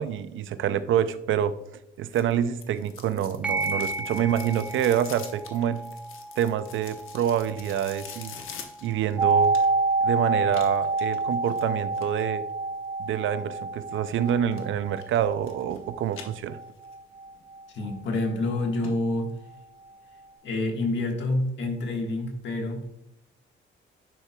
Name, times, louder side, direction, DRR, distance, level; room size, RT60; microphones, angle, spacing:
voice 1, 0.0-1.6 2.0-5.8 6.4-8.3 8.8-9.6 10.0-12.4 13.0-16.6, right 9 dB, 75° right, 13 dB, 0.5 m, -27 dB
sound 1, 2.1-9.9 10.5-12.2 14.1-14.6 15.0-15.8 16.1-16.9 17.3-17.4 18.1-18.2 18.5-18.6 18.8-18.9 19.3-19.4, left 7 dB, 80° left, 0.9 m, -45 dB
sound 2, 3.4-12.4, right 3 dB, 5° right, 0.9 m, -37 dB
sound 3, 9.2-18.9 19.2-19.3, right 3 dB, 30° right, 1.4 m, -28 dB
voice 2, 17.7-19.3 20.4-22.8, left 2 dB, 60° left, 2 dB, 1.5 m, -28 dB
10.0 x 4.4 x 2.3 m, 0.86 s
cardioid pair, 120°, 21 cm